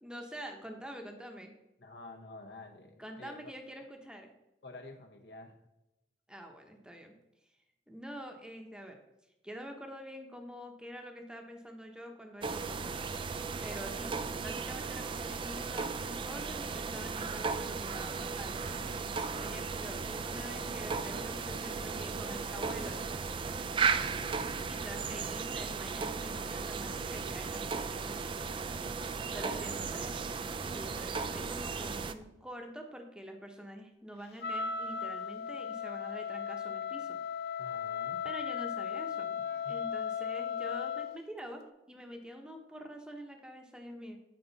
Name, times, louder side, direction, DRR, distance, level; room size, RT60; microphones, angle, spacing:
voice 1, 0.0-1.5 3.0-4.3 6.3-7.1 7.9-9.0 9.4-12.9 13.6-14.1 14.4-18.7 19.3-23.2 24.7-30.1 30.7-37.1 38.2-39.3 39.7-44.2, equal, 5° right, 3 dB, 0.8 m, -46 dB
voice 2, 1.8-3.5 4.6-5.6 24.0-24.5 29.3-29.7 30.1-30.3 37.6-38.2 39.3-39.8, left 2 dB, 80° left, 3 dB, 1.0 m, -50 dB
sound 1, 12.4-32.1, right 5 dB, 30° right, 0.3 m, -36 dB
sound 2, 17.9-23.2, left 1 dB, 40° left, 0.9 m, -52 dB
Wind instrument woodwind instrument, 34.4-41.2, left 7 dB, 60° left, 0.4 m, -36 dB
8.9 x 4.9 x 4.0 m, 0.94 s
head